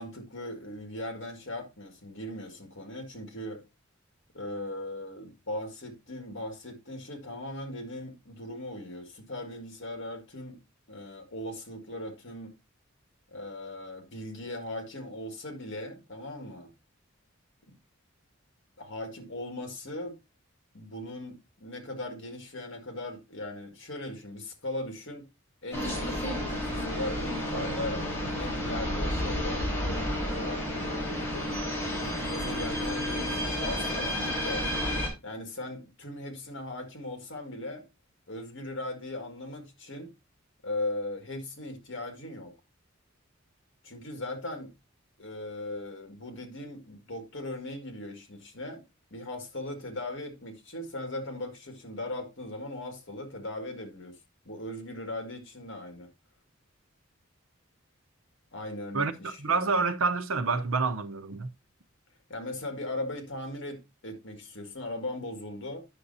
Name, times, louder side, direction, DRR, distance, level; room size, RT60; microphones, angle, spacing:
voice 1, 0.0-3.6 4.3-10.6 10.9-12.5 13.3-16.7 18.8-20.2 20.7-25.3 25.6-28.0 28.3-29.7 30.3-30.8 32.2-34.7 35.2-37.8 38.3-40.1 40.6-42.5 43.8-44.7 45.2-48.8 49.1-54.2 54.5-56.1 58.5-59.7 62.3-65.9, left 1 dB, 65° left, 1.9 m, -38 dB
sound 1, 25.7-35.1, equal, 15° left, 4.0 m, -31 dB
voice 2, 58.9-61.5, right 4 dB, 80° right, 0.8 m, -28 dB
9.7 x 6.4 x 2.7 m
head